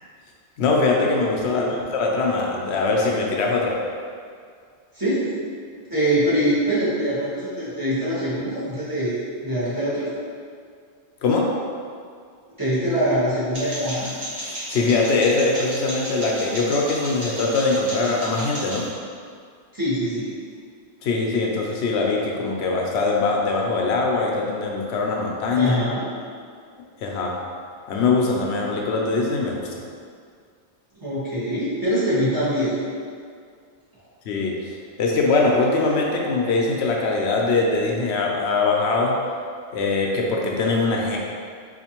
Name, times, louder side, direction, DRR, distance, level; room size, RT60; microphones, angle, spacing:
voice 1, 0.6-3.8 11.2-11.5 14.4-18.9 21.0-25.8 27.0-27.4 27.9-29.9 34.2-39.1 39.7-41.2, left 3 dB, 85° left, -1 dB, 0.8 m, -22 dB
voice 2, 4.9-5.3 5.9-9.2 9.4-10.1 12.6-14.1 19.7-20.4 25.5-26.1 31.0-32.8, equal, 20° right, -12 dB, 1.1 m, -23 dB
sound 1, 13.5-18.9, right 1 dB, 45° right, 1.2 m, -34 dB
4.2 x 2.5 x 2.9 m, 2.2 s
omnidirectional pair, 1.1 m